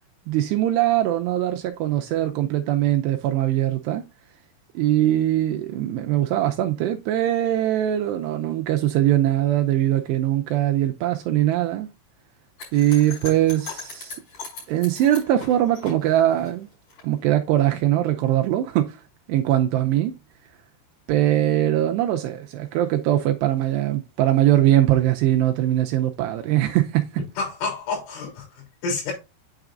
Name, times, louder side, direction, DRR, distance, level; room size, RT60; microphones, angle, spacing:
voice 1, 0.3-4.0 4.8-11.9 12.7-14.2 14.7-16.7 17.0-19.0 19.3-20.1 21.1-27.2, right 13 dB, 80° right, 2.5 m, -21 dB
sound 1, 12.6-17.0, left 4 dB, 35° left, 6.1 m, -39 dB
voice 2, 27.4-29.1, left 4 dB, 85° left, 5.6 m, -29 dB
8.9 x 5.9 x 2.5 m
omnidirectional pair, 5.4 m